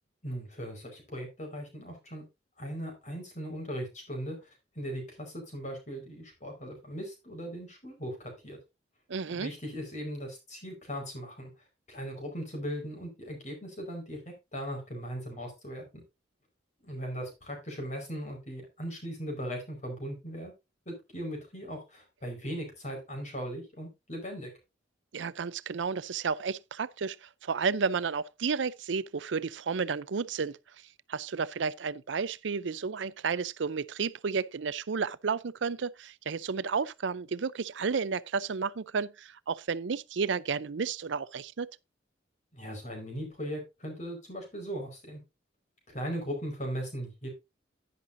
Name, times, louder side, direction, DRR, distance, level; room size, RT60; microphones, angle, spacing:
voice 1, 0.2-2.2 2.6-4.5 4.7-8.6 9.3-11.5 11.9-16.0 16.8-20.5 20.8-24.5 42.5-45.2 45.9-47.3, equal, 40° left, 4.7 m, -38 dB
voice 2, 9.1-9.5 25.1-30.6 31.1-41.7, right 5 dB, 80° right, 0.5 m, -32 dB
11.0 x 10.0 x 2.6 m
head